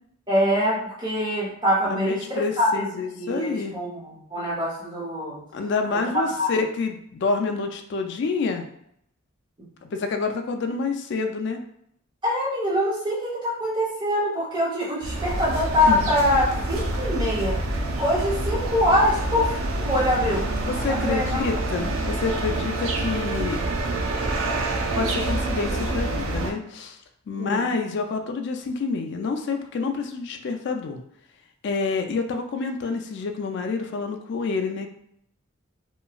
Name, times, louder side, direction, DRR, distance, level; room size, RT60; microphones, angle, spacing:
voice 1, 0.3-2.8 3.1-5.4 5.9-6.0 6.4-6.5 12.2-17.6 18.0-20.5 20.9-21.4 27.4-27.6, left 1 dB, 20° right, -6 dB, 0.9 m, -24 dB
voice 2, 1.8-3.7 5.5-8.7 9.8-11.6 15.9-16.1 20.6-23.6 24.0-24.1 24.9-27.0 27.3-31.0 31.6-34.9, left 4 dB, 55° left, 5 dB, 0.3 m, -28 dB
sound 1, 15.0-26.5, right 2 dB, 75° right, 0.4 m, -27 dB
2.9 x 2.3 x 2.4 m, 0.72 s
head